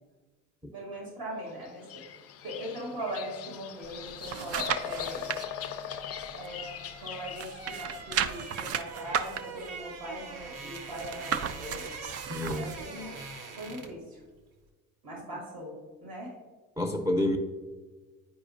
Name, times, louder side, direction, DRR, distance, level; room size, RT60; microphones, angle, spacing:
voice 1, 0.7-2.0 2.4-5.3 6.4-6.6 7.0-11.9 12.5-13.2 13.5-14.2 15.0-16.3, right 1 dB, 85° right, -2 dB, 2.0 m, -40 dB
Bird vocalization bird call bird song, 1.6-8.3, left 9 dB, 35° left, 0.4 m, -40 dB
sound 1, 3.8-5.4 5.9-7.0 7.3-12.9 13.3-13.4, right 8 dB, 40° right, 0.4 m, -35 dB
sound 2, 4.1-14.1 14.3-14.6, right 4 dB, 60° right, 1.0 m, -44 dB
voice 2, 12.3-12.7 16.8-17.4, left 1 dB, 5° right, 2 dB, 0.7 m, -28 dB
9.5 x 4.8 x 2.6 m, 1.3 s
hypercardioid pair, 55°, 41 cm